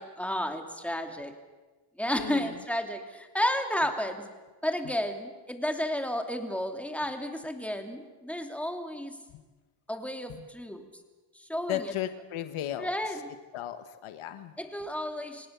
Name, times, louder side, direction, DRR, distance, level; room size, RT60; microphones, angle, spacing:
voice 1, 0.0-1.4 2.0-4.3 4.6-9.2 9.9-10.9 11.3-11.9 12.8-13.3 14.6-15.5, equal, 5° left, 5 dB, 3.0 m, -32 dB
voice 2, 2.2-2.6 9.3-9.4 10.4-10.5 11.7-12.9 13.5-14.5, left 12 dB, 85° left, 10 dB, 1.4 m, -35 dB
26.5 x 18.0 x 7.0 m, 1.2 s
cardioid pair, 75°, 49 cm